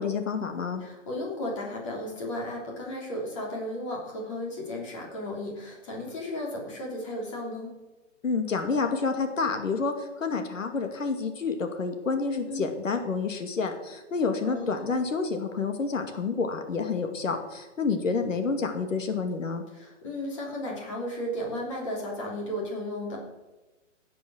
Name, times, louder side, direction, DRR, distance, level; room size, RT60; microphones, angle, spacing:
voice 1, 0.0-0.8 8.2-19.6, left 4 dB, 85° left, 6 dB, 2.3 m, -29 dB
voice 2, 0.8-7.7 12.5-12.6 14.4-14.9 19.7-23.2, left 1 dB, 25° left, -2 dB, 3.3 m, -34 dB
14.0 x 9.5 x 6.3 m, 1.1 s
hypercardioid pair, 180°, 38 cm